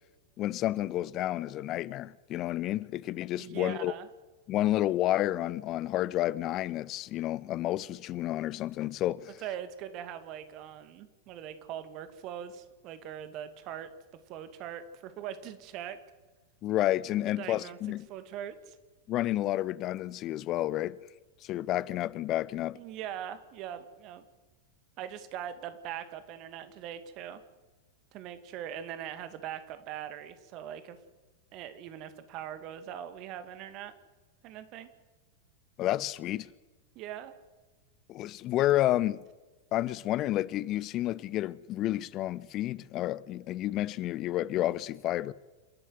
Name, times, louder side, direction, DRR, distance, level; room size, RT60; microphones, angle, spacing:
voice 1, 0.4-3.9 4.5-9.4 16.6-18.1 19.1-21.0 21.4-22.8 35.8-36.5 38.1-39.2 39.7-45.3, left 14 dB, 35° left, 0.7 m, -30 dB
voice 2, 3.3-4.1 9.4-13.9 14.3-16.0 17.4-17.8 18.1-18.8 22.7-24.2 25.0-27.4 28.1-31.0 31.5-33.9 34.4-34.9 37.0-37.3, right 10 dB, 40° right, 2.2 m, -41 dB
28.0 x 11.0 x 9.5 m
figure-of-eight pair, 90°, 0 cm